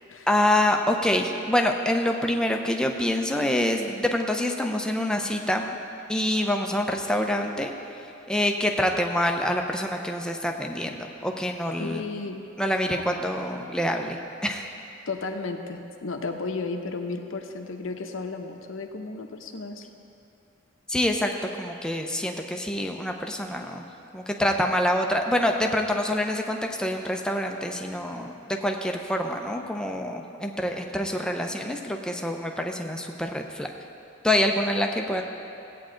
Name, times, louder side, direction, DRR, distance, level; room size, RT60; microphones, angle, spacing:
voice 1, 0.3-5.7 6.1-7.7 8.3-12.0 12.6-14.7 20.9-23.9 24.1-33.7 34.2-35.2, left 1 dB, 5° left, 2 dB, 0.6 m, -26 dB
voice 2, 11.8-12.5 12.9-13.0 15.1-19.9, left 3 dB, 75° left, 5 dB, 0.8 m, -33 dB
16.0 x 8.5 x 3.8 m, 2.8 s
head